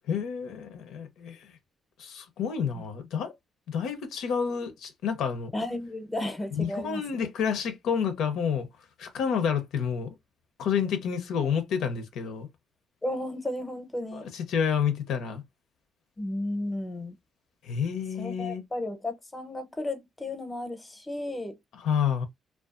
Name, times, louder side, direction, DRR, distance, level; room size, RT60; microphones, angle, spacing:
voice 1, 0.1-1.5 2.0-3.3 3.7-5.5 6.5-8.7 9.0-10.1 10.6-12.5 14.1-15.4 17.6-18.6 21.7-22.2, left 7 dB, 80° left, 0.5 m, -29 dB
voice 2, 5.5-7.3 11.4-11.5 13.0-14.3 16.2-17.2 18.2-21.6, left 1 dB, 15° left, 0.7 m, -34 dB
2.4 x 2.2 x 2.4 m
cardioid pair, 90°, 0 cm